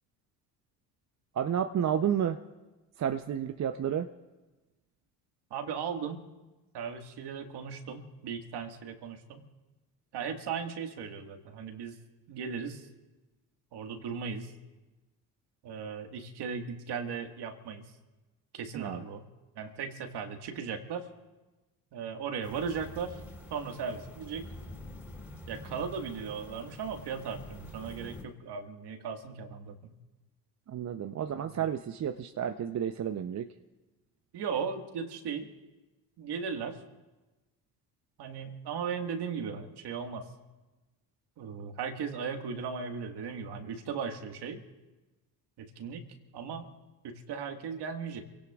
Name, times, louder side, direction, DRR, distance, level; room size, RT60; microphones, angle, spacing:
voice 1, 1.4-2.4 3.0-4.1 18.7-19.0 30.7-33.5, right 9 dB, 35° right, 7 dB, 0.7 m, -31 dB
voice 2, 5.5-6.2 6.7-9.4 10.1-12.0 12.3-12.9 13.7-14.5 15.6-17.9 18.5-19.3 19.6-21.1 21.9-23.2 23.5-24.5 25.5-29.9 31.2-31.7 34.3-35.5 36.2-36.8 38.2-40.3 41.4-44.6 45.6-46.1 46.3-46.7 47.0-48.2, right 6 dB, 60° right, 5 dB, 1.8 m, -37 dB
sound 1, 22.4-28.2, left 1 dB, 5° right, 3.6 m, -47 dB
28.0 x 17.5 x 2.4 m, 1.1 s
hypercardioid pair, 65°, 46 cm